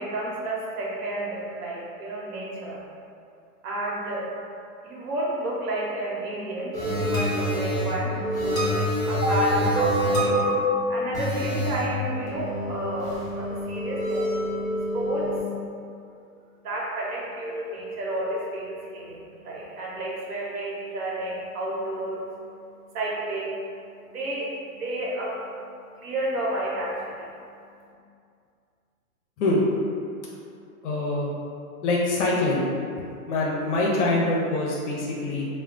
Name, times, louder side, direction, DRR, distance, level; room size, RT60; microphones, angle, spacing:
voice 1, 0.0-2.8 3.6-4.3 4.8-8.1 8.4-14.4 14.9-15.3 16.6-25.6 25.9-27.3, right 1 dB, 75° right, -4 dB, 0.9 m, -31 dB
sound 1, 6.7-15.4, equal, 10° left, 1.0 m, -26 dB
voice 2, 30.8-31.3 31.8-32.6 33.3-35.5, left 2 dB, 50° left, -4 dB, 0.6 m, -24 dB
2.2 x 2.1 x 3.6 m, 2.5 s
hypercardioid pair, 130°, 44 cm